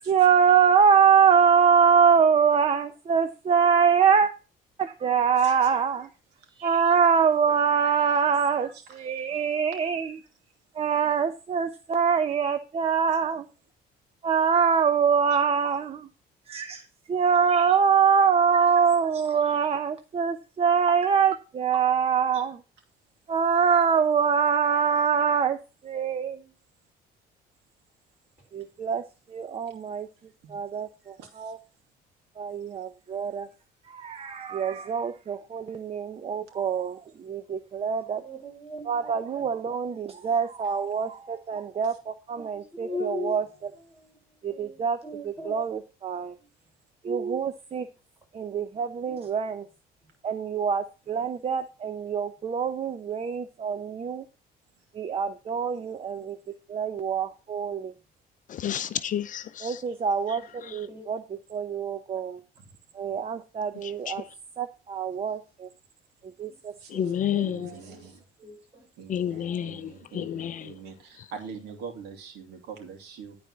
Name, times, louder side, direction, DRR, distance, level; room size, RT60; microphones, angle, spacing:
voice 1, 0.1-4.3 4.8-6.1 6.6-10.2 10.8-13.4 14.2-16.1 16.5-16.8 17.1-22.6 23.3-25.6 25.8-26.4 28.5-29.0 29.3-30.1 30.5-31.6 32.4-33.5 33.9-38.2 38.8-43.4 44.4-45.0 45.5-46.4 47.0-47.9 48.3-49.6 50.2-54.2 54.9-56.4 56.7-57.9 59.6-60.4 60.7-61.2 61.5-62.4 63.0-64.2 64.6-65.7 66.4-67.8, right 6 dB, 35° right, 0.8 m, -24 dB
voice 2, 5.3-5.8 6.5-6.9 7.8-8.2 8.6-9.3 30.4-30.6 31.2-31.5 59.9-60.0 63.1-63.2 66.8-66.9 67.4-68.2 69.0-73.4, right 6 dB, 85° right, 2.6 m, -44 dB
voice 3, 38.1-40.0 42.7-44.2 44.5-45.7 46.2-46.3 51.1-51.3 51.8-51.9 60.3-61.0 66.5-66.6 67.9-68.1 68.4-69.8, left 1 dB, 10° right, 6.2 m, -40 dB
voice 4, 58.5-59.8 60.7-60.8 63.8-64.1 66.9-67.7 69.1-70.7, left 10 dB, 50° left, 0.6 m, -30 dB
11.5 x 4.4 x 6.1 m
cardioid pair, 110°, 17 cm